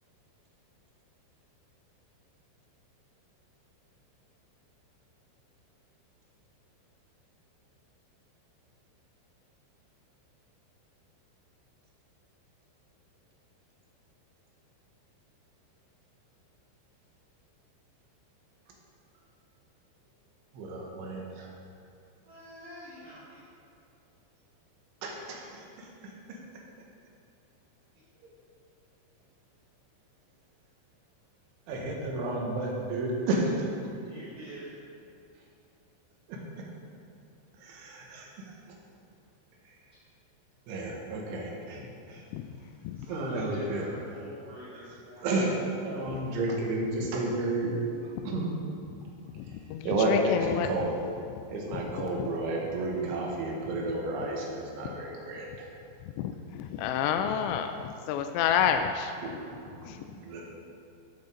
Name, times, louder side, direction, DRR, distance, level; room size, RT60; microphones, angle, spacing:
voice 1, 20.5-21.6 25.0-26.4 28.2-28.3 31.7-33.9 34.2-34.3 36.3-36.4 37.5-38.8 39.7-39.8 40.7-42.2 43.1-43.9 45.2-47.8 48.0-48.5 49.4-51.0 51.5-55.7 59.2-59.3 59.6-60.4, right 2 dB, 80° right, -1 dB, 3.9 m, -32 dB
voice 2, 22.2-23.4 34.0-34.7 43.0-43.8 44.1-45.3, right 1 dB, 40° right, -13 dB, 3.0 m, -46 dB
voice 3, 49.4-50.7 52.2-52.3 56.0-59.1 59.8-60.1, left 8 dB, 90° left, 7 dB, 2.5 m, -29 dB
14.0 x 7.9 x 3.8 m, 2.6 s
omnidirectional pair, 5.5 m